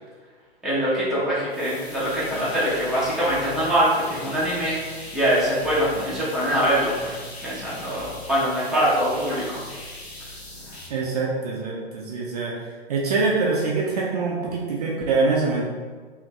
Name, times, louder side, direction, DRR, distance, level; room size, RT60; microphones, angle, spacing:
voice 1, 0.6-9.4 10.7-10.8, equal, ahead, -10 dB, 0.6 m, -23 dB
sound 1, 1.5-10.9, left 2 dB, 85° left, 0.8 m, -40 dB
voice 2, 10.9-12.6 12.9-15.6, right 3 dB, 40° right, -3 dB, 0.5 m, -24 dB
3.1 x 2.5 x 3.1 m, 1.5 s
figure-of-eight pair, 110°, 31 cm